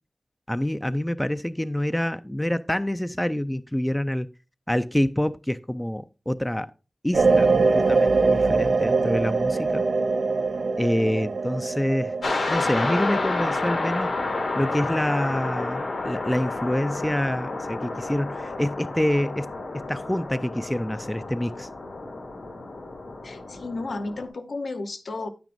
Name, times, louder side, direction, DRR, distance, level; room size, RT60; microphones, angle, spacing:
voice 1, 0.5-4.3 4.7-6.7 7.0-9.8 10.8-12.1 12.5-14.1 14.6-19.5 19.7-21.7, left 1 dB, 10° left, 0.4 m, -26 dB
sound 1, 7.1-12.3, right 4 dB, 75° right, 0.5 m, -22 dB
sound 2, 12.2-24.3, left 2 dB, 90° left, 2.3 m, -30 dB
voice 2, 23.2-25.3, left 3 dB, 70° left, 0.9 m, -33 dB
9.5 x 9.1 x 2.6 m
wide cardioid pair, 60°, 0 cm